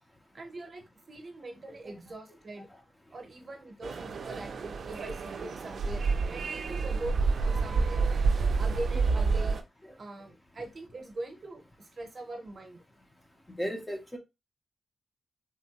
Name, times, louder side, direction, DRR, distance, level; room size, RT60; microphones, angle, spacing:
voice 1, 0.3-2.7 3.1-6.0 6.3-7.2 7.4-8.1 8.6-9.6 10.0-12.8, right 2 dB, 40° right, 0.7 m, -42 dB
sound 1, 3.8-9.6, right 4 dB, 65° right, 0.4 m, -28 dB
voice 2, 13.6-14.2, equal, 15° left, 0.5 m, -34 dB
3.4 x 2.1 x 2.8 m
wide cardioid pair, 155°, 0 cm